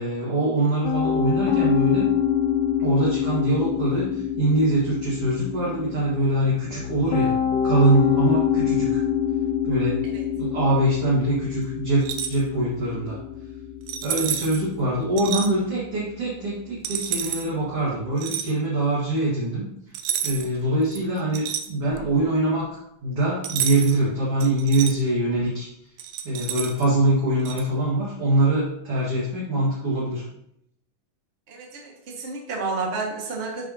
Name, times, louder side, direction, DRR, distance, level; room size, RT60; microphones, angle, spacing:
voice 1, 0.0-2.1 2.8-7.3 7.6-9.0 9.6-10.0 10.3-13.2 14.0-19.7 20.2-22.7 23.0-25.7 26.2-30.2, right 1 dB, 45° right, -6 dB, 2.4 m, -23 dB
Piano, 0.8-18.0, left 8 dB, 75° left, 2.2 m, -26 dB
sound 1, 12.0-12.4 13.9-14.6 15.2-15.5 16.8-17.5 18.2-18.5 19.9-20.6 20.9-22.1 23.4-24.0 24.4-24.9 26.0-26.9 27.5-27.6, right 9 dB, 75° right, 2.2 m, -29 dB
voice 2, 31.5-33.7, right 3 dB, 30° right, -2 dB, 1.2 m, -31 dB
12.0 x 5.5 x 2.9 m, 0.75 s
omnidirectional pair, 4.1 m